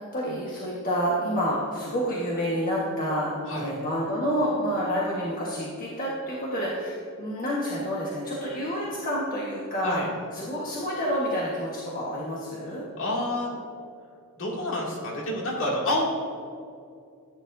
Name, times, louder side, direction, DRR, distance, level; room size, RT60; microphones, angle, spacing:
voice 1, 0.1-10.0 10.3-12.8, equal, 40° left, -6 dB, 1.5 m, -28 dB
voice 2, 13.0-13.5 14.4-16.0, left 1 dB, 60° left, -3 dB, 2.6 m, -28 dB
14.5 x 9.4 x 2.7 m, 2.5 s
head